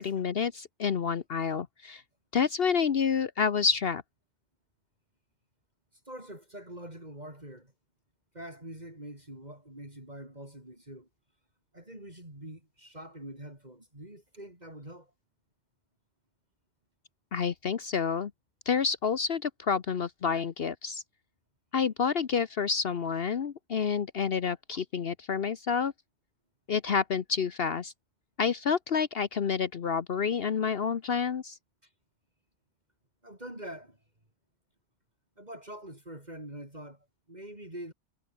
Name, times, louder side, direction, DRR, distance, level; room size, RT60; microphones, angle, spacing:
voice 1, 0.0-2.0 2.3-4.0 17.3-18.3 18.7-21.0 21.7-25.9 26.7-27.9 28.4-31.6, left 6 dB, 60° left, 1.1 m, -29 dB
voice 2, 5.9-7.7 8.3-11.1 11.7-15.1 31.8-31.9 33.2-34.0 35.4-37.9, right 1 dB, 35° right, 6.1 m, -45 dB
omnidirectional pair, 1.2 m